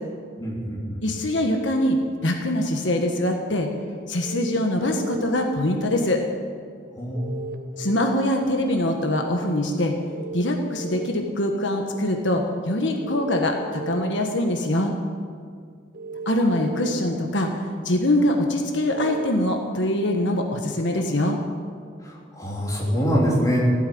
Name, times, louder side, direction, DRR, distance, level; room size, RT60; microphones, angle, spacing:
voice 1, 0.4-1.0 7.0-7.6 22.1-23.6, equal, 20° left, -4 dB, 3.7 m, -25 dB
voice 2, 1.0-3.7 4.1-6.2 7.8-9.9 10.3-14.9 16.2-21.4, left 1 dB, 75° left, 3 dB, 1.4 m, -23 dB
sound 1, 4.2-5.2 7.2-8.1 10.1-11.1 13.0-14.0 15.9-16.9 18.9-19.3, right 3 dB, 50° right, 1.0 m, -35 dB
15.5 x 9.2 x 9.6 m, 2.2 s
head